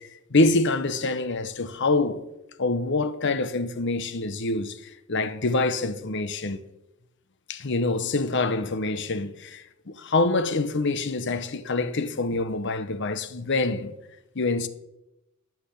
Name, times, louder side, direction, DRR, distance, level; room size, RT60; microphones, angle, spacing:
voice 1, 0.0-2.2 2.6-6.6 7.5-13.9 14.3-14.7, left 3 dB, 55° left, 0.9 m, -26 dB
12.0 x 6.0 x 8.5 m
head